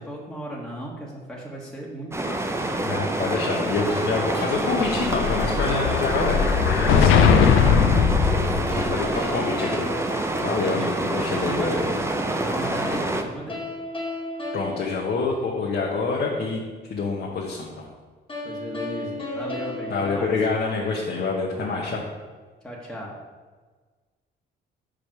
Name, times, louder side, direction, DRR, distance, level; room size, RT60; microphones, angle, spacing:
voice 1, 0.0-2.7 8.3-9.2 10.7-10.8 11.3-12.0 12.4-13.6 18.4-20.3 21.5-22.0 22.6-23.1, equal, ahead, -5 dB, 1.4 m, -36 dB
sound 1, 2.1-13.2, right 2 dB, 15° right, 0.7 m, -27 dB
voice 2, 2.8-6.4 6.6-7.9 8.3-8.4 8.9-9.9 10.4-11.8 14.5-16.6 16.9-17.9 19.9-22.0, left 4 dB, 55° left, -2 dB, 1.1 m, -27 dB
sound 2, 3.9-6.1 8.7-11.1 13.5-16.0 18.3-21.1, left 2 dB, 25° left, 1.5 m, -35 dB
Explosion, 4.5-9.1, left 7 dB, 90° left, 0.6 m, -20 dB
5.0 x 5.0 x 6.0 m, 1.4 s
cardioid pair, 90°, 20 cm